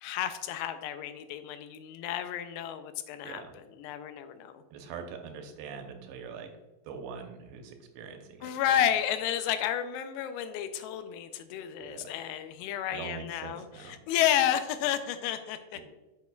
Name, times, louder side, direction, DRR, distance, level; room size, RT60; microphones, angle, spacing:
voice 1, 0.0-3.4 3.8-4.6 8.4-15.6, left 10 dB, 85° left, 10 dB, 2.7 m, -31 dB
voice 2, 4.7-6.5 6.8-8.8 11.8-12.1 12.9-14.0 15.7-15.8, right 6 dB, 85° right, 4 dB, 3.0 m, -43 dB
8.3 x 6.6 x 2.3 m, 1.1 s
omnidirectional pair, 4.8 m